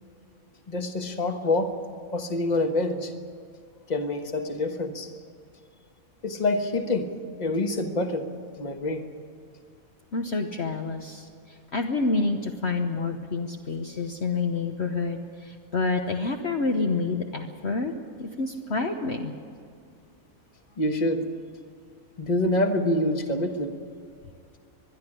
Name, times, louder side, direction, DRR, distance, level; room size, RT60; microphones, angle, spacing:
voice 1, 0.7-1.8 2.1-3.1 3.9-5.1 6.2-7.1 7.4-8.3 8.6-9.1 20.8-21.2 22.2-23.8, left 2 dB, 30° left, 6 dB, 1.4 m, -26 dB
voice 2, 10.1-17.9 18.2-19.3, left 3 dB, 50° left, 2 dB, 1.2 m, -28 dB
21.5 x 12.0 x 10.0 m, 2.3 s
omnidirectional pair, 1.5 m